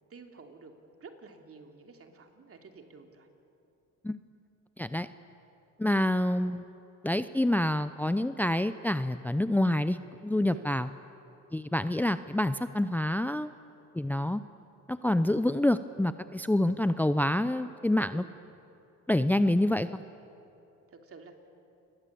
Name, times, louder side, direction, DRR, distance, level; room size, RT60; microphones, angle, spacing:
voice 1, 0.1-0.7 1.0-3.3 10.5-10.7 18.1-18.3 20.9-21.3, right 4 dB, 50° right, 4 dB, 3.0 m, -50 dB
voice 2, 4.8-5.1 5.8-6.6 7.0-10.0 10.2-10.9 11.5-13.5 13.9-14.4 14.9-18.2 19.1-20.0, left 1 dB, 5° left, 12 dB, 0.6 m, -27 dB
29.0 x 22.0 x 8.5 m, 2.8 s
cardioid pair, 90°, 30 cm